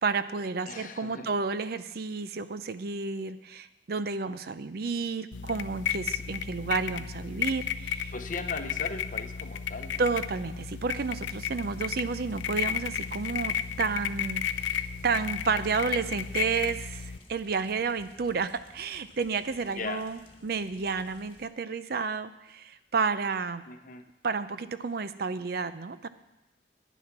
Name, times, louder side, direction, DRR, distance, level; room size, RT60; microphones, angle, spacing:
voice 1, 0.0-8.1 10.0-23.6 24.2-26.1, right 4 dB, 55° right, 13 dB, 0.5 m, -31 dB
voice 2, 0.7-1.4 8.1-10.0 19.6-20.1 23.7-24.0, left 3 dB, 45° left, 7 dB, 0.8 m, -38 dB
sound 1, 5.3-17.2, left 8 dB, 75° left, 0.5 m, -33 dB
sound 2, 10.9-21.5, left 1 dB, 30° left, 1.6 m, -56 dB
11.0 x 9.2 x 5.9 m, 0.97 s
head